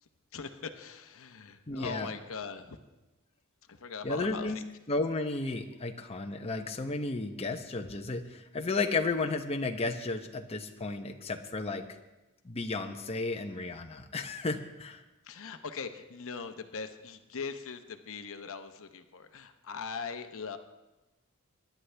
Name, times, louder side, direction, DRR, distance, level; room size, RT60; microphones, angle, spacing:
voice 1, 0.3-2.8 3.7-4.6 15.2-20.6, left 5 dB, 65° left, 7 dB, 0.8 m, -41 dB
voice 2, 1.7-2.1 4.0-4.6 4.9-11.9 12.4-15.0, left 3 dB, 25° left, 4 dB, 0.8 m, -33 dB
24.5 x 11.5 x 3.4 m, 1.0 s
head